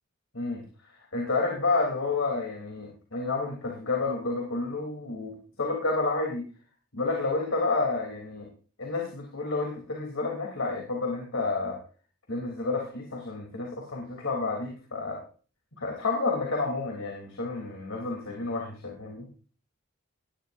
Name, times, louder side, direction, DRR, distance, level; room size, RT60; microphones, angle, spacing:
voice 1, 1.1-6.4 6.9-8.5 8.8-11.8 12.3-15.2 15.8-19.3, left 3 dB, 85° left, -1 dB, 3.4 m, -30 dB
19.0 x 12.0 x 2.7 m, 0.39 s
head